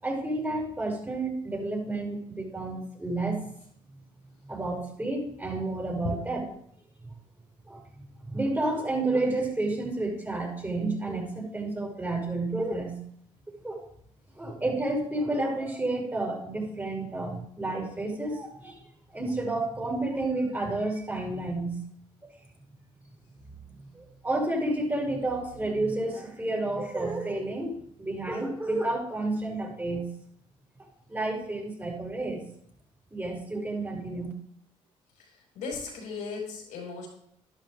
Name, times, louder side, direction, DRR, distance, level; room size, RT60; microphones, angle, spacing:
voice 1, 0.0-3.4 4.5-6.5 7.7-7.8 8.3-13.0 13.5-13.8 14.4-18.8 19.1-21.8 23.9-30.1 31.1-32.4 33.1-34.3, right 2 dB, 15° right, -3 dB, 5.9 m, -30 dB
voice 2, 35.5-37.1, left 4 dB, 80° left, -1 dB, 5.1 m, -35 dB
12.5 x 11.5 x 3.6 m, 0.66 s
supercardioid pair, 70°, 13 cm